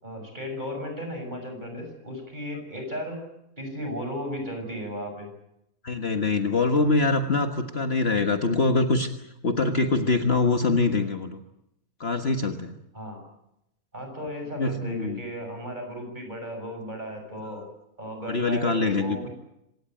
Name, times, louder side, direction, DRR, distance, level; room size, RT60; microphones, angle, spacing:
voice 1, 0.0-3.3 3.6-5.3 12.9-13.2 13.9-17.6 18.0-19.3, equal, 30° right, 4 dB, 6.9 m, -35 dB
voice 2, 5.8-9.1 9.4-11.4 12.0-12.7 14.6-15.2 18.3-19.3, left 3 dB, 45° left, 6 dB, 1.6 m, -24 dB
26.5 x 18.0 x 9.1 m, 0.84 s
omnidirectional pair, 1.5 m